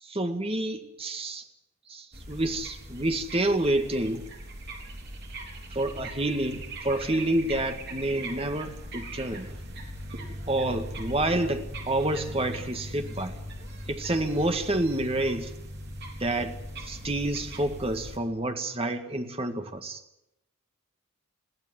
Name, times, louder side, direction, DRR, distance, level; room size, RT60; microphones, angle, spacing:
voice 1, 0.0-1.4 1.9-4.2 5.7-9.5 10.5-13.4 13.9-15.5 16.2-16.6 16.8-20.0, right 1 dB, 25° right, 6 dB, 1.9 m, -28 dB
sound 1, 2.1-18.2, right 1 dB, 50° right, 3.9 m, -40 dB
21.5 x 15.5 x 9.8 m, 0.85 s
head